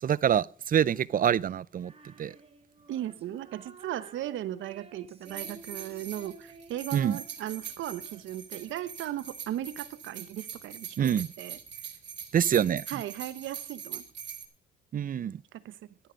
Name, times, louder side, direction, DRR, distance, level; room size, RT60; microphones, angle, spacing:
voice 1, 0.0-1.9 2.2-2.4 6.9-7.2 11.0-11.3 12.3-12.9 14.9-15.4, right 9 dB, 45° right, 0.5 m, -26 dB
Female singing, 1.8-9.2, right 3 dB, 30° right, 2.7 m, -53 dB
voice 2, 2.9-11.1 11.4-11.6 12.9-14.0 15.5-15.8, right 12 dB, 80° right, 1.1 m, -37 dB
sound 1, 5.2-14.4, right 8 dB, 65° right, 3.0 m, -43 dB
14.0 x 10.5 x 5.2 m
cardioid pair, 90°, 20 cm